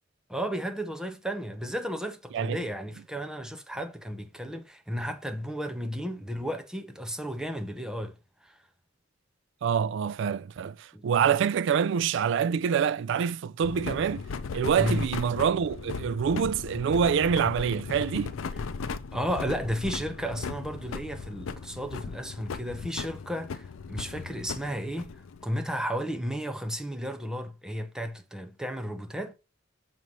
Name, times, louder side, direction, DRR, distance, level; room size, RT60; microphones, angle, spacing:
voice 1, 0.3-8.2 8.4-8.6 10.9-11.0 14.8-15.1 18.5-18.6 19.1-25.1 25.4-29.3, equal, 5° right, 0.7 m, -33 dB
voice 2, 9.6-14.2 14.5-18.3, right 7 dB, 65° right, 0.3 m, -26 dB
sound 1, 13.6-25.5, left 5 dB, 90° left, 0.5 m, -37 dB
6.8 x 3.1 x 5.3 m
head